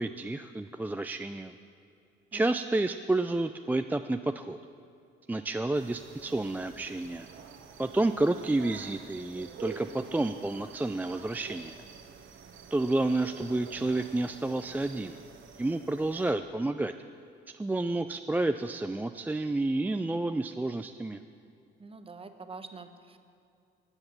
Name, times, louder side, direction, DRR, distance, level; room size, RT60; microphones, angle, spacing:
voice 1, 0.0-1.5 2.3-4.6 5.3-7.3 7.8-11.8 12.7-15.2 15.6-16.9 17.5-21.2, right 2 dB, 10° right, 7 dB, 0.3 m, -30 dB
sound 1, 5.7-16.3, right 6 dB, 80° right, 1.1 m, -48 dB
voice 2, 21.8-23.2, right 4 dB, 30° right, 8 dB, 1.0 m, -45 dB
13.5 x 8.0 x 7.2 m, 2.6 s
cardioid pair, 90°, 20 cm